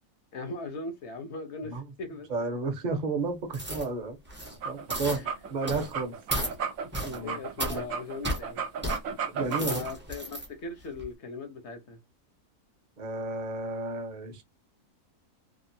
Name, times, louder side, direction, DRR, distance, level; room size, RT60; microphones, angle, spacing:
voice 1, 0.3-2.3 5.1-5.3 7.2-8.7 9.6-12.0, left 3 dB, 55° left, 0.8 m, -39 dB
voice 2, 2.3-4.2 4.6-6.2 7.0-7.4 7.7-7.8 9.3-9.8 13.0-14.4, right 3 dB, 40° right, 0.8 m, -32 dB
sound 1, 3.5-3.9 4.3-4.6 4.9-5.2 5.7-5.9 6.3-6.5 6.9-7.2 7.6-7.8 8.2-8.4 8.8-9.0 9.4-10.5 10.9-11.0, equal, 15° right, 0.3 m, -33 dB
sound 2, 4.5-9.9, right 6 dB, 65° right, 1.0 m, -34 dB
2.9 x 2.4 x 2.6 m
omnidirectional pair, 1.6 m